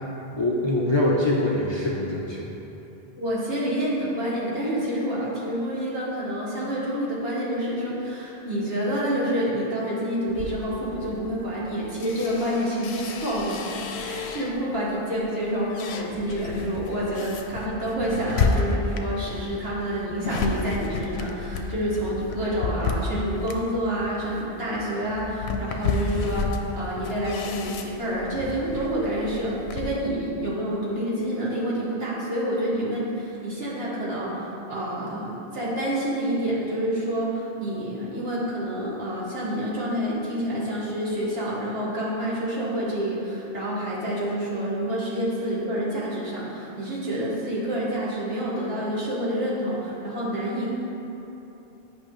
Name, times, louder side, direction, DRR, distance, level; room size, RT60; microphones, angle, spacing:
voice 1, 0.3-2.5, left 1 dB, 35° left, -4 dB, 0.5 m, -23 dB
voice 2, 3.2-13.7 14.0-50.7, equal, 75° right, -7 dB, 1.7 m, -28 dB
sound 1, 10.3-14.8 15.2-30.0, left 4 dB, 90° left, 0.8 m, -31 dB
8.8 x 5.5 x 3.1 m, 3.0 s
omnidirectional pair, 1.0 m